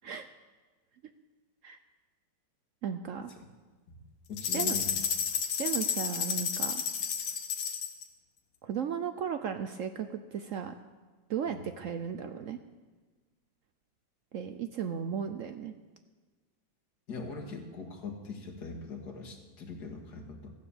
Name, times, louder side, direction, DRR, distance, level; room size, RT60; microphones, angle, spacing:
voice 1, 2.8-3.3 4.5-4.8 5.6-6.8 8.6-10.7 11.3-12.6 14.3-15.7, right 7 dB, 80° right, 9 dB, 0.7 m, -35 dB
voice 2, 4.3-4.9 11.5-11.6 17.1-20.5, left 4 dB, 55° left, 2 dB, 2.3 m, -41 dB
sound 1, 4.4-8.0, left 7 dB, 80° left, 1.9 m, -31 dB
14.5 x 10.5 x 6.9 m, 1.3 s
omnidirectional pair, 2.1 m